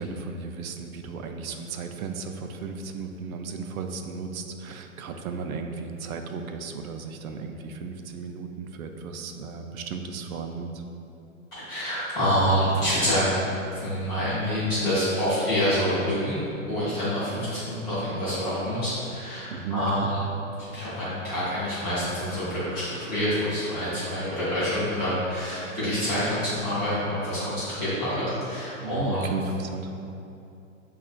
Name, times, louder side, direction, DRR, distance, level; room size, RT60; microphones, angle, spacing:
voice 1, 0.0-10.8 19.5-20.1 28.8-29.9, right 4 dB, 90° right, 5 dB, 0.5 m, -35 dB
voice 2, 11.6-13.3 13.8-16.4 16.7-20.2 20.7-29.3, equal, 10° left, -14 dB, 0.5 m, -27 dB
5.7 x 2.4 x 2.4 m, 2.7 s
hypercardioid pair, 160°, 41 cm